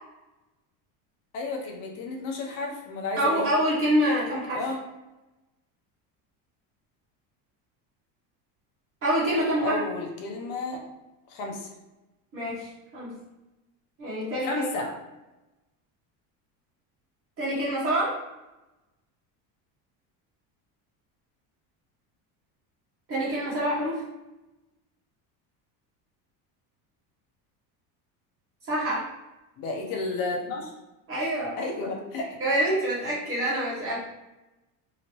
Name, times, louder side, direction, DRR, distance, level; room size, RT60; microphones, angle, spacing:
voice 1, 1.3-3.5 4.5-4.8 9.6-10.8 11.3-11.7 14.4-14.9 29.6-30.7 31.6-32.4, left 3 dB, 55° left, 1 dB, 0.9 m, -32 dB
voice 2, 3.2-4.6 9.0-9.8 12.3-13.1 14.0-14.5 14.8-14.9 17.4-18.1 23.1-24.0 28.7-29.0 31.1-31.6 32.4-34.0, right 1 dB, 35° right, -8 dB, 1.2 m, -26 dB
2.9 x 2.8 x 2.9 m, 1.0 s
cardioid pair, 145°, 40 cm